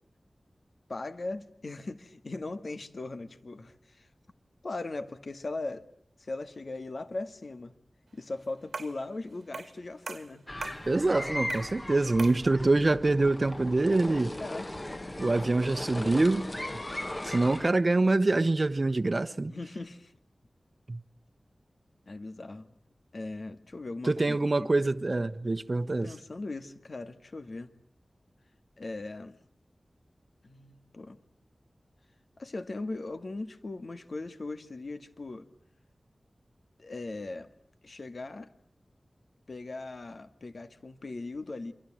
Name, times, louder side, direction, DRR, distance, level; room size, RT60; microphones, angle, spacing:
voice 1, 0.9-4.1 4.6-5.9 6.2-7.7 8.1-10.4 14.4-14.7 19.5-20.1 22.1-22.7 23.1-24.7 26.0-27.7 28.8-29.4 30.4-31.2 32.4-35.5 36.8-37.5 37.8-38.5 39.5-41.7, left 2 dB, 55° left, 2.1 m, -39 dB
sound 1, 8.7-9.0 9.5-9.8 10.1-10.9 11.5-11.8 12.2-12.5, right 4 dB, 85° right, 1.7 m, -40 dB
sound 2, 10.5-17.7, left 1 dB, 25° left, 1.8 m, -38 dB
voice 2, 10.9-14.4 15.2-16.5 17.2-19.5 20.9-21.0 24.0-26.1, right 2 dB, 40° right, 1.1 m, -25 dB
28.0 x 25.5 x 7.6 m
wide cardioid pair, 85°, 0 cm